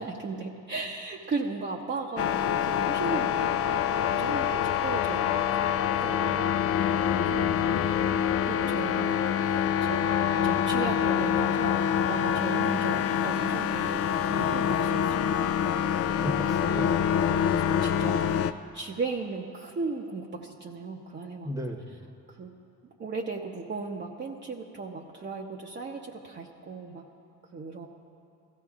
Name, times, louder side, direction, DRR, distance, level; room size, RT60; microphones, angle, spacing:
voice 1, 0.0-3.5 4.1-6.5 7.1-7.5 7.8-8.0 8.4-10.0 10.4-15.3 15.7-15.8 17.3-21.5 22.4-22.5 23.0-27.1 27.5-27.9, right 4 dB, 35° right, 0 dB, 0.9 m, -36 dB
sound 1, 2.2-18.5, left 8 dB, 50° left, 0.4 m, -26 dB
voice 2, 15.9-17.1 21.4-21.9, equal, 10° right, 3 dB, 1.1 m, -36 dB
16.0 x 14.0 x 2.5 m, 2.6 s
cardioid pair, 80°, 31 cm